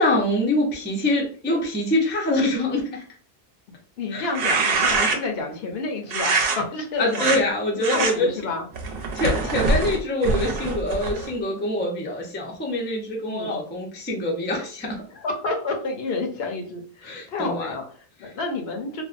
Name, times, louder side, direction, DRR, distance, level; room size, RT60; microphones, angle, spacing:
voice 1, 0.0-3.0 4.1-4.3 7.0-8.3 9.1-15.0 17.0-17.7 18.2-18.3, left 1 dB, 20° left, -1 dB, 0.3 m, -24 dB
voice 2, 4.0-7.4 7.9-8.7 13.3-13.6 15.1-19.0, left 3 dB, 75° left, 2 dB, 0.8 m, -29 dB
sound 1, 4.2-5.4 6.1-6.6 7.1-7.4 7.8-8.1 8.7-11.3, right 3 dB, 70° right, 0.8 m, -24 dB
2.5 x 2.1 x 2.4 m, 0.42 s
omnidirectional pair, 1.1 m